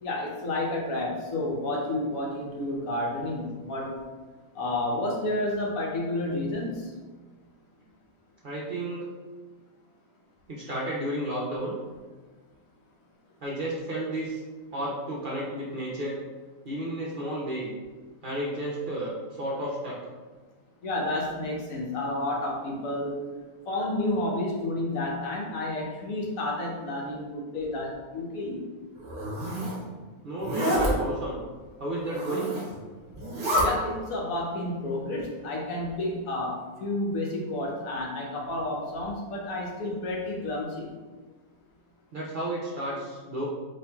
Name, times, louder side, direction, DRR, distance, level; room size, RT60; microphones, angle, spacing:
voice 1, 0.0-4.0 4.5-6.9 20.8-23.1 23.7-28.6 33.6-40.9, left 1 dB, 70° left, -2 dB, 1.1 m, -30 dB
voice 2, 8.4-9.1 10.5-11.7 13.4-14.4 14.7-16.2 16.6-17.7 18.2-20.0 30.2-31.4 31.8-32.5 42.1-43.4, right 1 dB, 65° right, -6 dB, 0.5 m, -32 dB
Zipper (clothing), 29.0-29.8 30.4-30.9 32.0-32.7 33.1-33.7, equal, 40° right, 0.8 m, -28 dB
4.1 x 2.8 x 2.2 m, 1.4 s
omnidirectional pair, 1.5 m